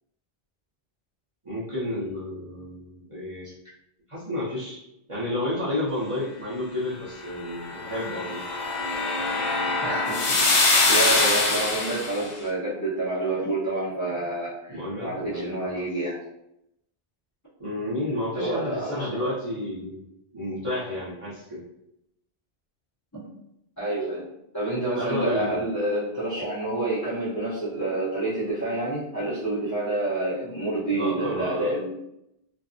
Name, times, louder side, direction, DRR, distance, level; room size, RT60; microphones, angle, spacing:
voice 1, 1.4-3.5 4.1-4.8 5.1-8.4 14.7-15.8 17.6-20.0 20.3-21.6 25.0-25.6 30.9-31.7, left 1 dB, 35° right, -10 dB, 0.8 m, -31 dB
sound 1, 7.6-12.2, left 3 dB, 50° left, 0.6 m, -23 dB
voice 2, 9.8-16.2 18.3-19.1 23.1-23.2 23.8-24.3 24.5-31.9, right 2 dB, 20° left, -11 dB, 1.0 m, -28 dB
2.6 x 2.5 x 2.4 m, 0.82 s
omnidirectional pair, 1.0 m